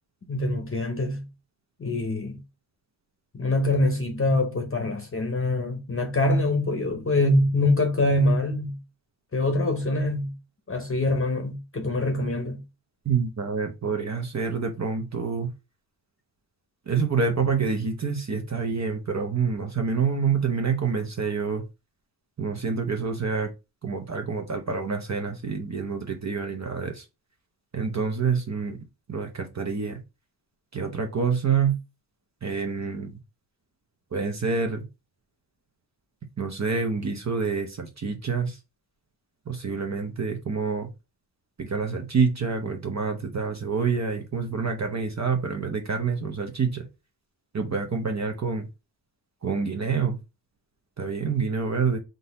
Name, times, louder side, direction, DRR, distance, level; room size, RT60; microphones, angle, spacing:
voice 1, 0.3-1.2 1.8-2.4 3.3-8.8 9.3-10.3 10.7-12.6, left 2 dB, 30° left, 0.8 m, -24 dB
voice 2, 13.1-15.5 16.9-21.6 22.4-23.5 23.8-27.0 27.7-28.8 29.1-30.0 30.7-31.8 32.4-33.1 34.1-34.8 36.4-38.6 39.5-40.9 41.6-46.9 47.5-48.7 49.4-50.2 51.0-52.0, right 5 dB, 40° right, 0.7 m, -27 dB
3.9 x 2.7 x 4.0 m
wide cardioid pair, 95°, 45 cm